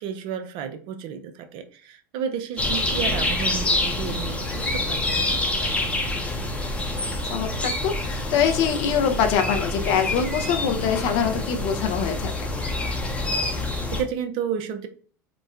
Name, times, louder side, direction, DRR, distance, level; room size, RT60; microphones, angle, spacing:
voice 1, 0.0-5.8 13.9-14.9, right 8 dB, 55° right, 9 dB, 0.4 m, -32 dB
sound 1, 2.6-14.0, left 2 dB, 10° left, 0.7 m, -27 dB
voice 2, 7.2-12.5, left 7 dB, 60° left, 5 dB, 0.4 m, -24 dB
3.0 x 2.0 x 2.3 m, 0.43 s
hypercardioid pair, 85°, 10 cm